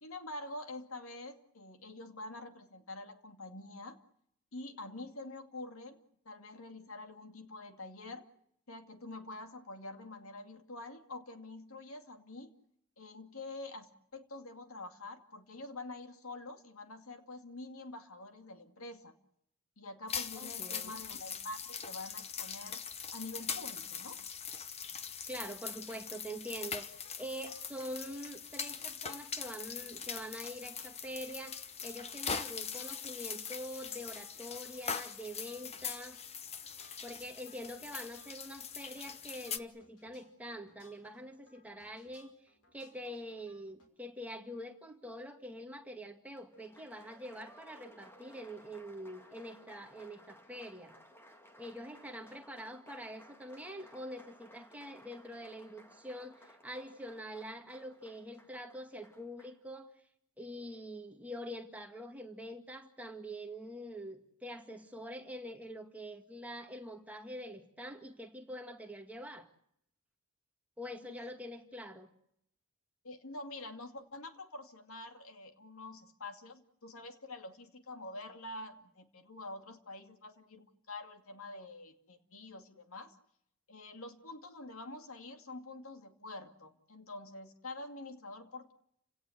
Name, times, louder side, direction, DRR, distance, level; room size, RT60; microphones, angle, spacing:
voice 1, 0.0-4.0 4.5-8.3 8.7-12.5 13.0-19.1 19.8-22.8 23.1-24.2 71.0-71.2 73.0-83.2 83.7-88.7, left 2 dB, 70° left, 7 dB, 2.4 m, -46 dB
sound 1, 20.1-39.6, left 7 dB, 30° left, 1.0 m, -42 dB
voice 2, 20.4-21.0 25.3-36.2 37.0-51.0 51.6-59.9 60.4-69.5 70.8-72.1, equal, 5° right, 4 dB, 2.0 m, -45 dB
sound 2, 26.5-43.9, left 2 dB, 85° left, 5.3 m, -65 dB
Applause, 46.4-59.6, equal, 10° left, 2.0 m, -58 dB
30.0 x 18.0 x 8.0 m, 0.73 s
head